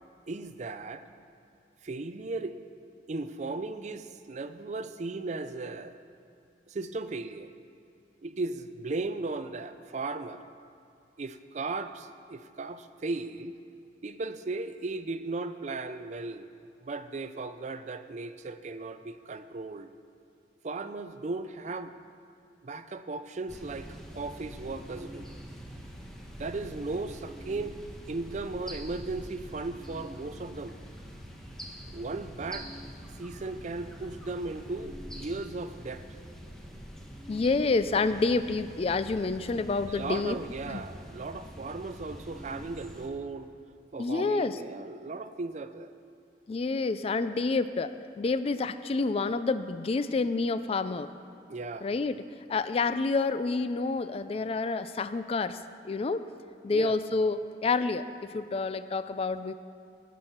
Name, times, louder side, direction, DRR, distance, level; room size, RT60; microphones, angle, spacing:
voice 1, 0.3-1.1 1.8-2.6 3.1-6.0 6.7-7.5 8.2-10.4 11.2-13.6 14.0-16.5 16.8-19.9 20.6-21.9 22.6-25.3 26.4-27.8 28.1-30.8 31.9-32.7 33.2-36.0 39.9-43.5 43.9-45.9 51.5-51.9 56.7-56.9, right 3 dB, 40° right, 11 dB, 0.5 m, -36 dB
sound 1, 23.5-43.1, equal, 5° left, 1.1 m, -45 dB
voice 2, 37.3-40.4 40.7-40.8 44.0-44.6 46.5-51.1 51.8-52.2 52.5-55.6 55.8-56.2 56.6-58.0 58.3-59.5, left 3 dB, 35° left, 12 dB, 0.3 m, -28 dB
17.5 x 6.2 x 5.7 m, 2.6 s
head